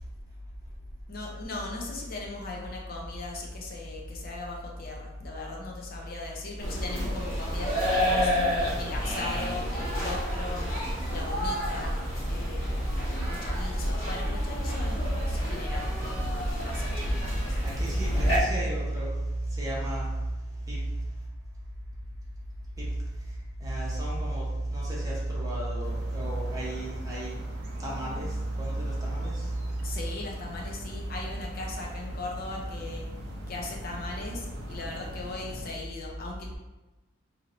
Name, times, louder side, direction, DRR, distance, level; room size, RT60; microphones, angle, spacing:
voice 1, 1.1-10.7 11.1-12.0 12.3-12.9 13.3-15.9 16.6-17.6 29.8-33.1 33.5-36.6, left 2 dB, 45° left, -1 dB, 0.5 m, -38 dB
sound 1, 6.6-18.4, equal, 80° left, 1.2 m, -29 dB
voice 2, 17.6-19.1 19.5-20.1 20.7-20.8 22.8-22.9 23.6-24.4 24.7-27.3 27.8-28.3 28.5-29.5, right 1 dB, 15° right, -6 dB, 0.8 m, -31 dB
sound 2, 25.8-35.7, right 1 dB, 55° right, 0.5 m, -44 dB
2.8 x 2.6 x 4.2 m, 1.1 s
head